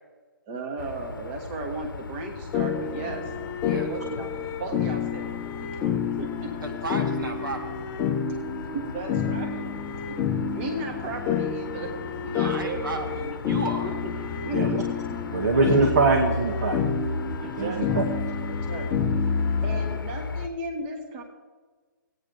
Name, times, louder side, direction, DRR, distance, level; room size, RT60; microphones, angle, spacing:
voice 1, 0.5-3.3 3.7-5.3 5.7-6.7 8.7-9.7 10.1-10.2 10.5-13.3 13.8-13.9 14.4-14.9 15.2-15.6 17.4-18.1 18.5-18.9 19.6-21.2, right 2 dB, 30° right, 3 dB, 1.4 m, -36 dB
sound 1, 0.8-20.5, left 3 dB, 75° left, 0.8 m, -34 dB
sound 2, 2.5-20.0, left 7 dB, 20° left, 0.6 m, -30 dB
voice 2, 6.6-7.8 12.3-13.9 17.5-17.8, right 2 dB, 80° right, 1 dB, 2.2 m, -34 dB
voice 3, 15.3-16.8 17.6-18.1, right 3 dB, 55° right, 5 dB, 1.2 m, -23 dB
15.5 x 9.4 x 3.8 m, 1.4 s
hypercardioid pair, 140°, 11 cm